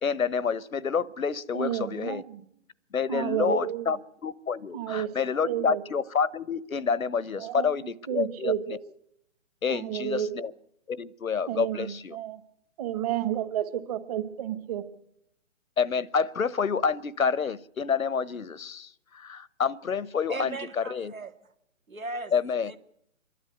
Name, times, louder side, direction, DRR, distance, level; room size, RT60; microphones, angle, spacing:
voice 1, 0.0-2.2 2.9-4.0 4.2-8.8 9.6-10.5 10.9-12.2 15.8-21.1 22.3-22.7, left 6 dB, 90° left, 22 dB, 0.9 m, -28 dB
voice 2, 1.5-2.5 3.1-4.0 4.7-5.1 5.4-5.8 7.3-8.8 9.7-10.4 11.5-12.4 12.8-14.8, right 11 dB, 30° right, 10 dB, 1.3 m, -31 dB
voice 3, 20.3-21.3 21.9-22.3 22.7-22.8, right 3 dB, 85° right, 7 dB, 2.2 m, -37 dB
27.5 x 12.0 x 9.5 m, 0.76 s
figure-of-eight pair, 140°, 40 cm